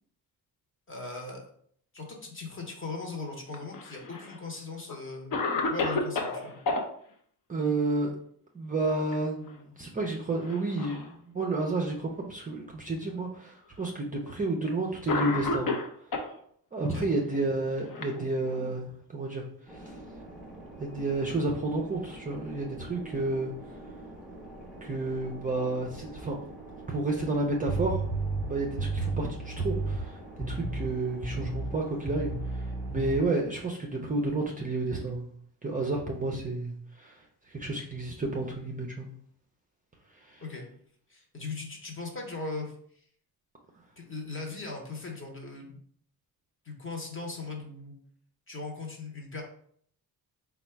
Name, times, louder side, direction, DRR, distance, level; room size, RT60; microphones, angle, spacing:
voice 1, 0.9-1.5 1.9-5.3 5.7-6.6 16.9-17.1 40.4-40.7 41.1-42.7 44.0-45.8 46.6-48.0 48.5-49.4, left 3 dB, 35° left, 1 dB, 0.9 m, -39 dB
Cough, 3.5-4.4 4.9-5.0 5.3-6.8 8.7-9.1 9.5-9.6 10.4-11.1 11.9-12.0 13.0-13.1 14.3-14.4 15.1-16.3 17.3-18.7, left 3 dB, 60° left, 0.7 m, -31 dB
voice 2, 7.5-8.1 8.5-15.7 16.7-19.5 19.7-20.0 20.8-23.5 24.8-26.4 26.9-28.0 28.5-30.2 30.5-35.3 35.6-39.1 40.2-40.4, right 2 dB, 20° right, -1 dB, 0.4 m, -31 dB
sound 1, 19.7-33.2, right 2 dB, 5° right, 0.8 m, -46 dB
sound 2, 27.7-30.1 30.4-30.9 31.2-31.8 32.0-33.2, right 3 dB, 85° left, 1.2 m, -32 dB
4.3 x 2.3 x 4.3 m, 0.62 s
wide cardioid pair, 175°, 38 cm